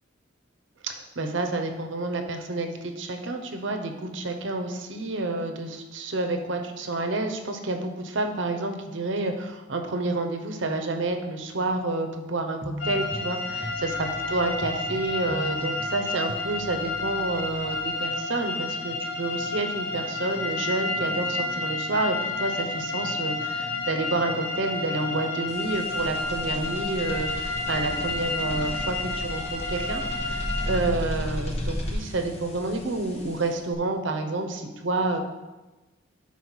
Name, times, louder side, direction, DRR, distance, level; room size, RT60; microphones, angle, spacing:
voice 1, 0.8-30.0 30.3-35.2, right 2 dB, 75° right, 5 dB, 0.8 m, -29 dB
sound 1, 12.6-17.9, equal, 10° right, 0.4 m, -39 dB
sound 2, 12.8-30.8, left 3 dB, 65° left, 1.9 m, -31 dB
sound 3, 25.5-33.7, equal, 30° left, 0.8 m, -34 dB
5.6 x 4.4 x 6.2 m, 1.1 s
head